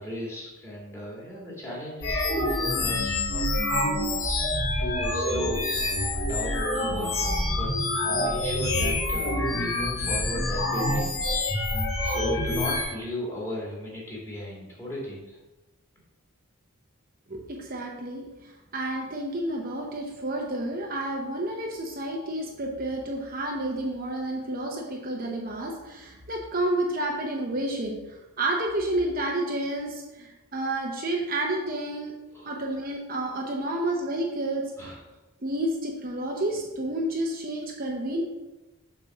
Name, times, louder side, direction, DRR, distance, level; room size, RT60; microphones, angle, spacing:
voice 1, 0.0-3.4 4.8-7.7 8.0-11.7 12.0-15.4 32.3-32.5 34.8-35.0, left 1 dB, 10° left, -5 dB, 2.1 m, -36 dB
sound 1, 2.0-12.8, left 1 dB, 70° left, 1.8 m, -26 dB
voice 2, 17.3-18.2 18.7-28.0 28.4-32.1 32.4-34.9 35.4-38.2, right 1 dB, 40° right, 0 dB, 0.8 m, -30 dB
7.1 x 4.3 x 5.8 m, 1.1 s
head